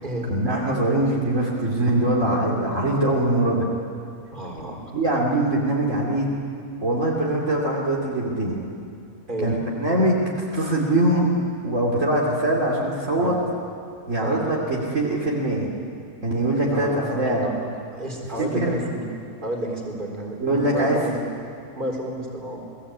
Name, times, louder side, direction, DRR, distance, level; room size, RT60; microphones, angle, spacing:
voice 1, 0.3-3.6 4.9-6.3 6.8-8.6 9.4-10.2 10.5-11.3 11.6-13.3 14.1-15.7 16.2-17.5 18.4-18.8 20.4-21.0, right 1 dB, 55° right, -4 dB, 3.3 m, -22 dB
voice 2, 4.3-4.9 9.3-9.6 13.2-13.4 14.2-14.4 16.7-19.0 19.4-21.2 21.8-22.6, right 1 dB, 30° right, 0 dB, 4.1 m, -31 dB
29.5 x 19.5 x 8.6 m, 2.4 s
omnidirectional pair, 1.6 m